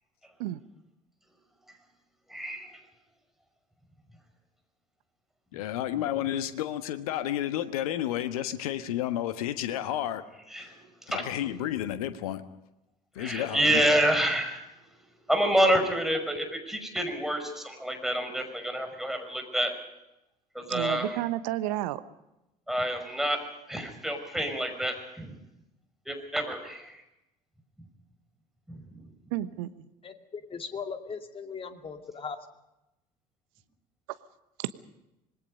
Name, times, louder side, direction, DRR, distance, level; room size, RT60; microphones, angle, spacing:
voice 1, 2.3-2.8 10.5-11.3 13.2-14.7 15.3-19.7 20.5-21.2 22.7-23.4 23.7-25.4 26.1-27.0 27.8-27.9 28.7-29.0, right 1 dB, ahead, 4 dB, 5.7 m, -28 dB
voice 2, 5.5-10.2 10.5-10.7 11.1-12.4 13.1-13.9, left 12 dB, 65° left, 11 dB, 1.4 m, -31 dB
voice 3, 20.7-22.0 29.3-29.9 34.6-34.7, right 15 dB, 60° right, 13 dB, 1.1 m, -31 dB
voice 4, 30.0-32.4, left 5 dB, 30° left, 6 dB, 2.3 m, -38 dB
26.0 x 20.5 x 5.3 m, 0.91 s
figure-of-eight pair, 60°, 20 cm